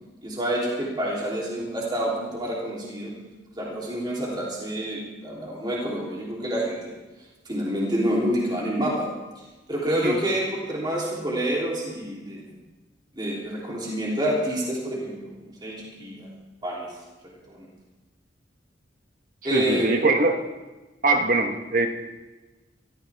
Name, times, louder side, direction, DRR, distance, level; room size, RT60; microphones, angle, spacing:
voice 1, 0.2-3.1 3.5-7.0 7.4-9.1 9.7-12.4 13.1-15.3 15.6-16.3 16.6-16.9 17.5-17.7 19.4-19.9, right 1 dB, 25° right, -5 dB, 3.3 m, -28 dB
voice 2, 19.5-20.4 21.0-21.9, right 2 dB, 50° right, 5 dB, 1.3 m, -22 dB
23.0 x 14.0 x 3.5 m, 1.2 s
head